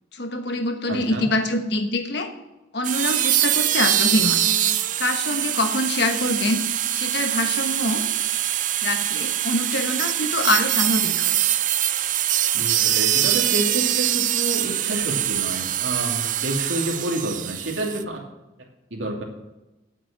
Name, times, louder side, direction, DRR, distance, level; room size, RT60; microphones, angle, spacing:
voice 1, 0.1-2.3 2.7-4.4 5.0-8.0 8.8-11.4, left 1 dB, 60° left, 6 dB, 1.3 m, -25 dB
voice 2, 0.9-1.3 12.5-18.2 18.9-19.2, right 1 dB, 75° right, 0 dB, 2.6 m, -29 dB
sound 1, 2.8-18.0, right 12 dB, 40° right, 0.5 m, -23 dB
9.4 x 8.2 x 7.3 m, 1.1 s
head